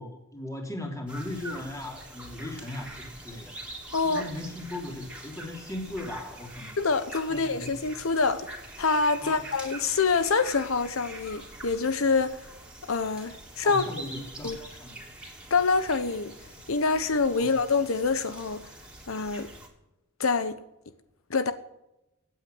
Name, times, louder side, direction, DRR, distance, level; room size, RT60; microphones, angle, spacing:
voice 1, 0.0-3.5 4.0-6.8 7.3-7.8 9.2-9.5 13.6-15.1 17.4-17.5, left 1 dB, 15° left, 3.4 m, -38 dB
sound 1, 1.1-19.7, right 1 dB, 5° right, 3.1 m, -44 dB
voice 2, 3.9-4.2 6.8-8.5 8.8-12.5 12.9-13.8 14.4-14.6 15.5-16.3 16.7-18.7 19.1-19.5 20.2-20.6 21.3-21.5, left 4 dB, 85° left, 1.0 m, -26 dB
16.5 x 9.1 x 7.8 m
head